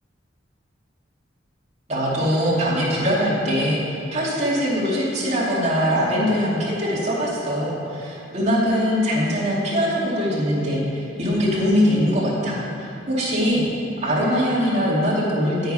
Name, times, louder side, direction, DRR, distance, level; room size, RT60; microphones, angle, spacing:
voice 1, 1.9-13.6 14.0-15.7, equal, 35° right, -6 dB, 2.6 m, -22 dB
9.2 x 9.0 x 5.5 m, 2.7 s
head